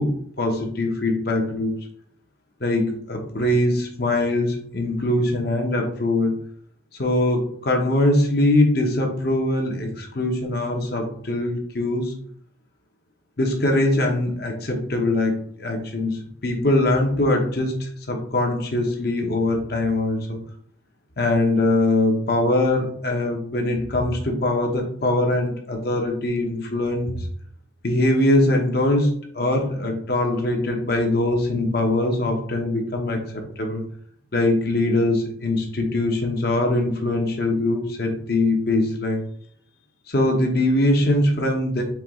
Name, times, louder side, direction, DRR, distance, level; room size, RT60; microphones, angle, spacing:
voice 1, 0.0-1.8 2.6-6.4 7.0-12.1 13.4-20.4 21.2-27.3 27.8-33.2 33.6-33.8 34.3-39.2 40.1-41.8, left 1 dB, 55° left, 2 dB, 1.0 m, -22 dB
4.7 x 3.1 x 3.6 m, 0.62 s
head